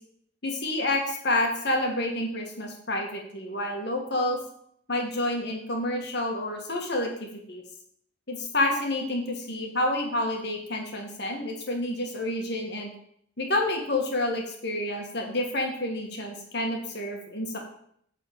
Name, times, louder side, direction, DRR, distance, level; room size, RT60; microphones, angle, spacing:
voice 1, 0.4-4.4 4.9-7.1 7.5-7.6 8.3-12.9 13.4-17.6, left 1 dB, 55° left, 2 dB, 1.7 m, -29 dB
9.1 x 4.3 x 6.6 m, 0.67 s
head